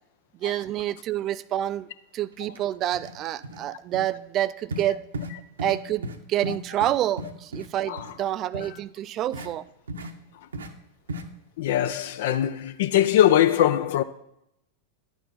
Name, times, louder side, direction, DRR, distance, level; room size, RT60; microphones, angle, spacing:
voice 1, 0.4-1.9 2.1-5.0 5.6-9.6, right 12 dB, 35° right, 0.3 m, -28 dB
sound 1, 2.5-2.6 2.9-3.1 3.4-3.6 3.9-4.1 4.7-4.9 5.1-5.3 5.6-5.8 6.0-6.2 6.4-7.7 8.0-8.1 8.5-8.7 9.3-9.5 9.9-10.1 10.5-10.7 11.1-11.2, right 1 dB, 70° right, 0.7 m, -35 dB
voice 2, 11.6-14.0, left 11 dB, 55° left, 0.3 m, -22 dB
10.5 x 4.4 x 5.5 m
figure-of-eight pair, 90°, 0 cm